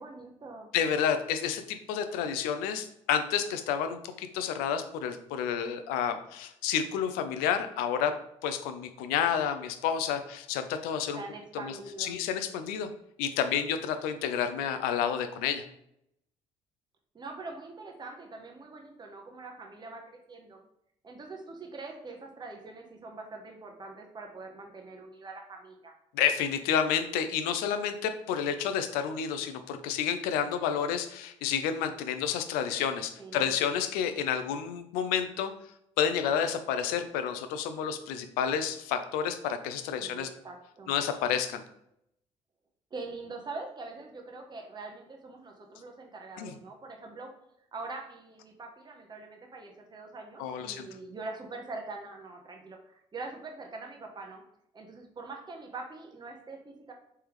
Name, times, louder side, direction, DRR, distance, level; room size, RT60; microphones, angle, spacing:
voice 1, 0.0-0.7 11.1-12.2 17.1-20.6 21.0-25.9 33.2-33.5 40.0-40.9 42.9-47.3 47.7-54.4 54.7-56.9, right 3 dB, 30° right, 2 dB, 0.8 m, -43 dB
voice 2, 0.7-8.1 8.4-11.2 11.6-12.9 13.2-15.6 26.1-35.5 36.0-40.3 40.9-41.6 46.4-46.5 50.4-50.9, left 8 dB, 80° left, 9 dB, 0.4 m, -30 dB
3.4 x 3.3 x 3.0 m, 0.76 s
hypercardioid pair, 60°, 15 cm